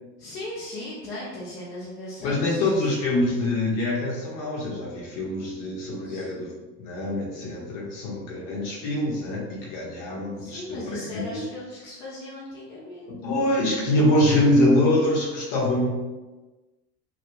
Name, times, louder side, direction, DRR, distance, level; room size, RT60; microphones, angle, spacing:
voice 1, 0.2-2.7 6.0-6.3 10.4-13.1, left 1 dB, 20° left, -8 dB, 0.5 m, -37 dB
voice 2, 2.2-11.4 13.1-15.9, left 1 dB, 40° left, -3 dB, 0.9 m, -24 dB
2.3 x 2.1 x 3.1 m, 1.2 s
figure-of-eight pair, 80°, 48 cm